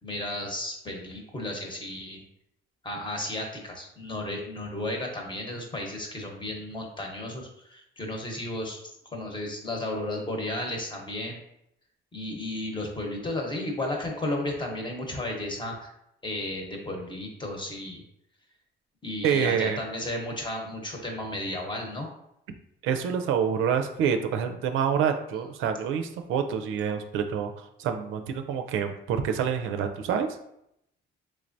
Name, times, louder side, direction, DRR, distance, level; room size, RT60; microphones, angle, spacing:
voice 1, 0.0-2.2 2.8-11.4 12.1-15.9 16.2-18.0 19.0-22.1, left 1 dB, 25° left, 1 dB, 0.9 m, -33 dB
voice 2, 19.2-19.8 22.8-30.3, right 7 dB, 90° right, 7 dB, 0.4 m, -27 dB
3.4 x 3.2 x 2.6 m, 0.79 s
cardioid pair, 90°, 20 cm